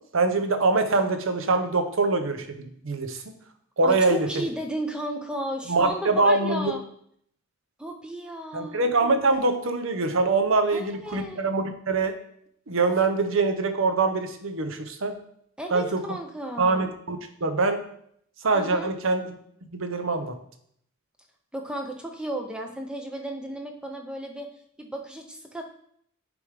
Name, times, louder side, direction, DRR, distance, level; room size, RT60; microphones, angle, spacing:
voice 1, 0.1-3.4 3.8-4.4 5.7-6.7 8.5-12.2 12.7-15.2 15.7-16.0 16.6-17.8 18.4-19.3 19.7-20.3, right 3 dB, 60° right, 7 dB, 0.7 m, -24 dB
voice 2, 3.8-6.8 7.8-8.9 10.7-11.5 15.6-16.9 18.5-18.9 21.5-24.5 24.8-25.6, right 1 dB, 5° right, 4 dB, 0.5 m, -34 dB
6.9 x 3.5 x 4.7 m, 0.67 s
head